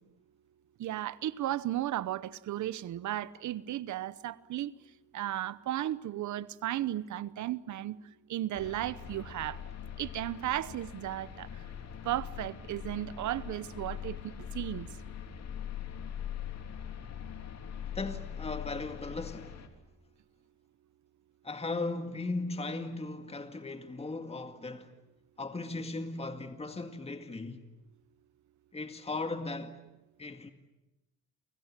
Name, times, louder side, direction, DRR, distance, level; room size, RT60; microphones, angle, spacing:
voice 1, 0.8-4.7 5.1-8.0 8.3-9.6 10.0-11.5 12.0-14.9, right 13 dB, 70° right, 1.0 m, -35 dB
sound 1, 8.5-19.7, left 9 dB, 60° left, 3.4 m, -42 dB
voice 2, 17.9-19.6 21.4-24.9 25.4-27.6 28.7-29.8 30.2-30.5, left 3 dB, 20° left, 2.0 m, -37 dB
29.5 x 25.0 x 7.5 m
cardioid pair, 90°, 30 cm